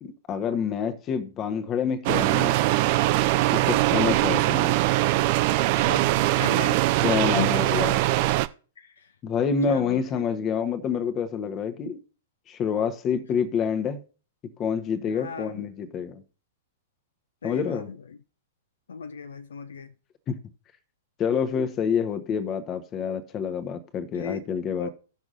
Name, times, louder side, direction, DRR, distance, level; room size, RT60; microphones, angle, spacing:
voice 1, 0.0-2.6 3.5-4.8 7.0-8.0 9.2-12.0 12.5-14.0 14.6-16.2 17.4-17.9 20.3-20.4 21.2-24.9, left 6 dB, 25° left, 1.0 m, -27 dB
sound 1, 2.1-8.5, right 17 dB, 40° right, 0.4 m, -22 dB
voice 2, 5.8-6.8 7.2-7.8 8.8-9.1 9.7-10.3 15.0-15.7 17.4-18.2 18.9-19.9 24.1-24.5 24.8-24.9, left 5 dB, 65° left, 0.6 m, -36 dB
17.5 x 6.1 x 2.5 m
figure-of-eight pair, 105°, 0 cm